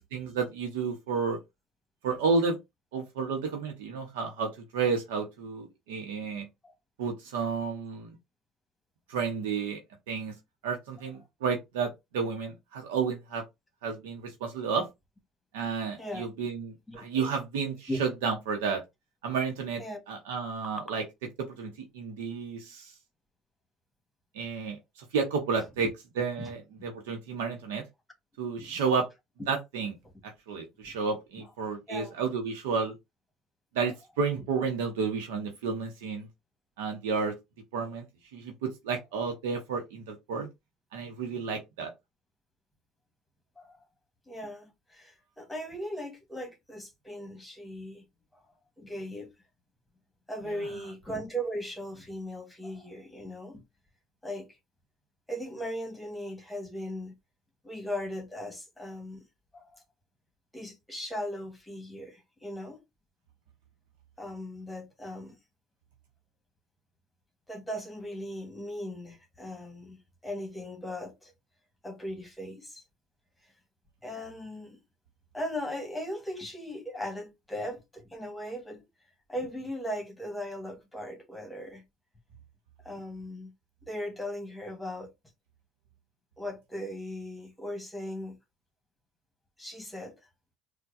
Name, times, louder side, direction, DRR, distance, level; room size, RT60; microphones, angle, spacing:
voice 1, 0.0-1.4 2.0-2.6 2.9-6.5 7.0-8.2 9.1-9.8 10.1-10.4 10.6-13.4 13.8-14.9 15.5-18.8 19.2-19.8 20.1-21.0 21.4-22.9 24.3-24.8 25.1-25.9 26.2-27.8 28.4-29.1 29.5-29.9 30.5-32.9 33.7-36.3 36.8-37.4 37.7-38.1 38.3-40.5 40.9-41.9, right 5 dB, 90° right, 0.8 m, -31 dB
voice 2, 15.8-16.3 16.9-17.3 17.9-18.0 19.8-20.0 25.8-25.9 26.4-26.5 28.6-28.8 29.4-29.5 30.9-31.0 31.4-31.5 31.9-32.1 43.6-43.8 44.3-48.0 48.3-48.4 48.8-49.3 50.3-53.6 54.2-54.5 55.3-57.1 57.6-59.2 59.5-59.8 60.5-62.8 64.2-65.4 67.5-71.3 71.8-72.8 74.0-74.8 75.3-78.8 79.3-81.8 82.8-83.5 83.8-85.1 86.4-88.4 89.6-90.1, equal, 10° left, 1.4 m, -38 dB
4.4 x 2.2 x 2.6 m
supercardioid pair, 95°, 0 cm